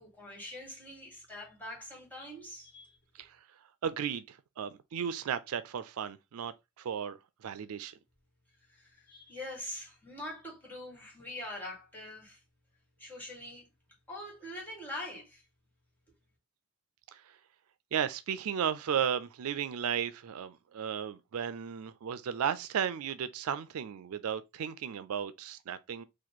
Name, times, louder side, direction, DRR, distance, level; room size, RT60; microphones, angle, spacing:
voice 1, 0.0-3.0 8.7-12.4 13.0-13.7 14.1-15.4, left 1 dB, 10° left, 1.9 m, -44 dB
voice 2, 3.8-7.9 17.1-17.2 17.9-26.0, right 8 dB, 85° right, 0.4 m, -35 dB
4.1 x 2.6 x 2.9 m
head